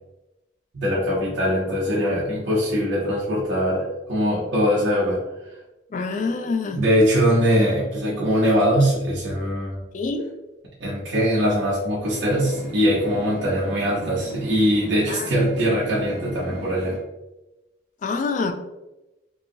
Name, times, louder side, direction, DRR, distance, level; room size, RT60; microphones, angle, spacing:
voice 1, 0.7-5.2 6.7-9.8 10.8-17.0, equal, 75° right, -6 dB, 0.8 m, -22 dB
voice 2, 5.9-6.8 9.9-10.3 15.1-15.4 18.0-18.5, left 4 dB, 45° left, 6 dB, 0.3 m, -26 dB
sound 1, 12.0-17.0, left 2 dB, 70° left, 1.2 m, -38 dB
3.1 x 2.6 x 2.6 m, 0.98 s
head